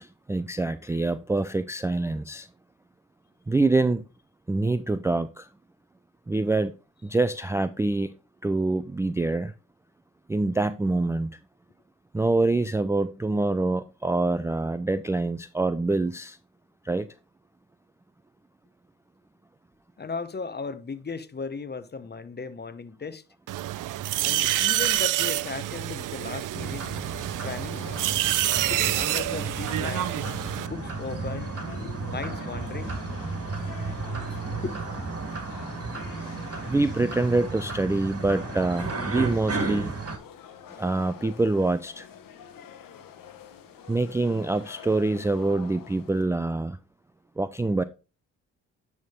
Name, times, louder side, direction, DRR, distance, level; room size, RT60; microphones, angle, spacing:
voice 1, 0.0-2.5 3.5-4.0 4.5-5.5 6.3-6.7 7.0-8.1 8.4-9.5 10.3-11.3 12.1-16.4 16.8-17.1 36.6-39.9 40.8-42.1 43.9-46.8 47.4-47.8, right 2 dB, 10° right, 0.4 m, -25 dB
voice 2, 20.0-23.2 24.2-26.9 27.4-27.9 28.6-30.1 30.7-31.5 32.1-33.0 34.6-34.8, left 4 dB, 30° left, 0.9 m, -36 dB
sound 1, 23.5-30.7, right 14 dB, 60° right, 0.5 m, -27 dB
sound 2, 26.5-40.2, right 3 dB, 40° right, 2.0 m, -34 dB
sound 3, 27.7-46.3, left 8 dB, 65° left, 1.1 m, -46 dB
10.5 x 3.6 x 3.9 m
supercardioid pair, 55°, 36 cm